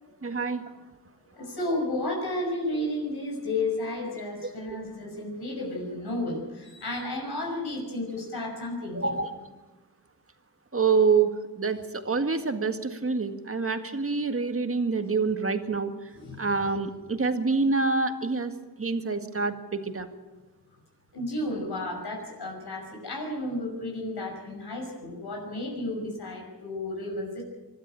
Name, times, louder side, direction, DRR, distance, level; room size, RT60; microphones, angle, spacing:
voice 1, 0.2-0.6 8.9-9.4 10.7-11.3 11.6-15.9 16.4-18.5 18.8-20.1, right 4 dB, 35° right, 7 dB, 1.9 m, -26 dB
voice 2, 1.4-9.2 16.1-16.5 21.1-27.4, left 1 dB, 70° left, 0 dB, 6.0 m, -32 dB
24.5 x 12.5 x 9.0 m, 1.2 s
wide cardioid pair, 105°, 40 cm